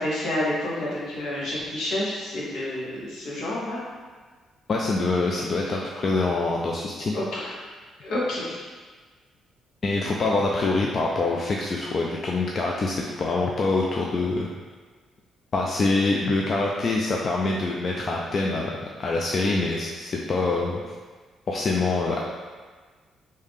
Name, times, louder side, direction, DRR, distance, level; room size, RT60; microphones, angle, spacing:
voice 1, 0.0-3.8 7.1-7.4 8.0-8.6, left 1 dB, 75° left, -6 dB, 1.1 m, -29 dB
voice 2, 4.7-7.6 9.8-14.5 15.5-18.7 19.0-20.8 21.5-22.2, left 3 dB, 45° left, -2 dB, 0.4 m, -25 dB
3.2 x 2.7 x 3.5 m, 1.4 s
cardioid pair, 90°, 0 cm